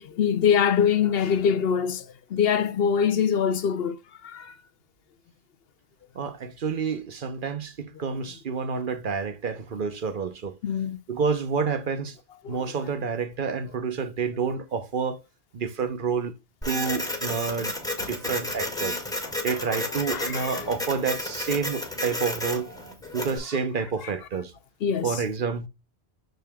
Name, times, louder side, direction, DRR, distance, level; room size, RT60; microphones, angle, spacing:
voice 1, 0.0-2.0 2.3-4.0 4.2-4.5 10.6-11.0 12.4-12.6 18.0-18.1 20.1-20.6 24.8-25.2, left 7 dB, 65° left, 0.8 m, -24 dB
voice 2, 6.1-10.5 11.1-12.2 12.5-15.2 15.5-16.3 16.6-17.7 18.0-19.0 19.4-22.7 23.1-24.5 25.0-25.7, right 5 dB, 55° right, 0.9 m, -29 dB
Printer, 16.6-23.4, left 1 dB, 5° left, 1.8 m, -32 dB
6.6 x 6.4 x 2.2 m
omnidirectional pair, 1.1 m